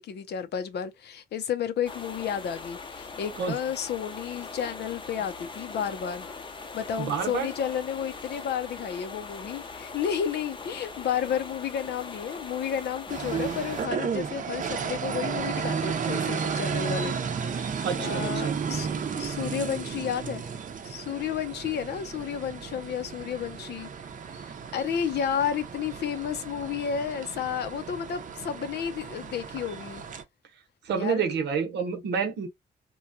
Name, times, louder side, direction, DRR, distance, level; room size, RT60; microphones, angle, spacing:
voice 1, 0.0-6.3 6.7-17.1 17.5-18.9 19.1-20.4 20.8-23.9 24.7-30.0 30.9-31.2, left 8 dB, 75° left, 0.6 m, -32 dB
sound 1, 1.8-13.9, left 4 dB, 30° left, 0.6 m, -41 dB
voice 2, 7.0-7.5 17.8-18.6 30.8-32.5, right 6 dB, 85° right, 0.9 m, -28 dB
sound 2, 13.1-30.2, right 6 dB, 50° right, 0.6 m, -33 dB
3.0 x 2.2 x 2.6 m
cardioid pair, 100°, 18 cm